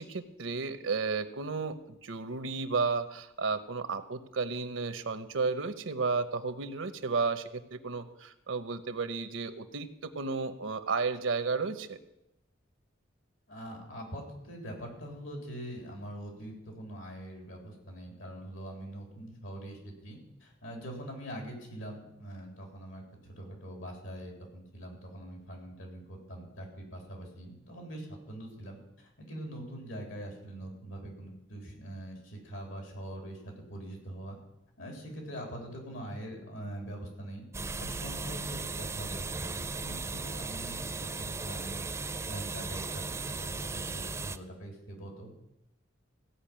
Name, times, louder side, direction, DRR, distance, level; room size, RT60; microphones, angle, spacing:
voice 1, 0.0-12.0, right 4 dB, 85° right, 11 dB, 0.9 m, -33 dB
voice 2, 13.5-34.4 34.8-37.4 37.8-41.9 42.3-45.3, right 1 dB, 90° left, 1 dB, 3.7 m, -43 dB
sound 1, 37.5-44.4, right 3 dB, 15° right, 0.4 m, -37 dB
15.5 x 5.7 x 8.7 m, 0.89 s
head